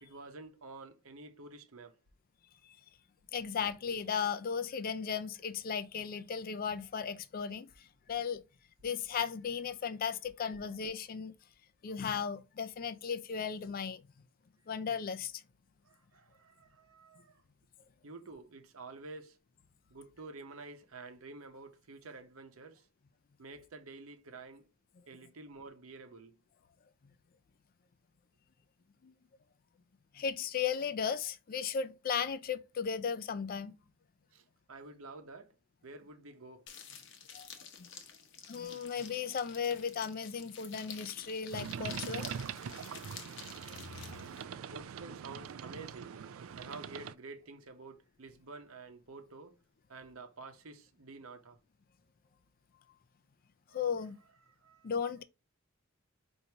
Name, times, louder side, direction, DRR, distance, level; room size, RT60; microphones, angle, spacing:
voice 1, 0.0-2.0 15.8-17.4 18.0-19.4 19.9-22.9 23.4-24.7 25.1-26.4 34.3-35.6 35.8-36.7 44.7-46.2 46.6-49.6 49.9-51.6 53.7-53.8 54.6-55.1, right 3 dB, 90° right, 0.8 m, -50 dB
voice 2, 3.3-8.4 8.8-11.3 11.8-14.0 14.7-15.4 29.0-29.1 30.1-33.7 37.3-37.5 37.8-37.9 38.5-42.3 44.1-44.2 53.7-54.2 54.8-55.2, left 6 dB, 45° left, 0.4 m, -36 dB
sound 1, 36.7-44.4, left 7 dB, 60° left, 0.8 m, -50 dB
sound 2, 41.5-47.1, right 7 dB, 70° right, 0.3 m, -43 dB
4.6 x 2.7 x 2.8 m
head